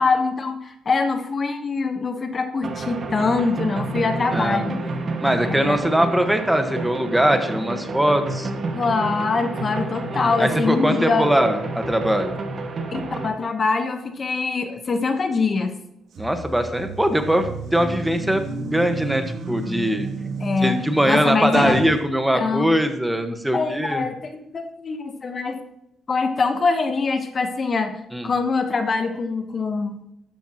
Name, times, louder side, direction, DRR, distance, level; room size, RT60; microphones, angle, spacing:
voice 1, 0.0-4.8 5.5-5.8 8.7-11.3 12.9-15.8 20.4-21.8 22.3-22.7 23.5-25.6 26.1-29.9, left 4 dB, 40° left, 7 dB, 1.1 m, -24 dB
sound 1, 2.6-13.3, right 3 dB, 50° right, 1.7 m, -30 dB
voice 2, 4.3-4.7 5.2-8.5 10.2-12.4 16.2-18.4 18.7-20.1 20.6-24.1 28.1-28.3, equal, 5° right, 6 dB, 1.3 m, -21 dB
sound 2, 16.1-22.0, right 3 dB, 70° right, 2.5 m, -31 dB
13.0 x 10.0 x 3.0 m, 0.82 s
cardioid pair, 90°, 0 cm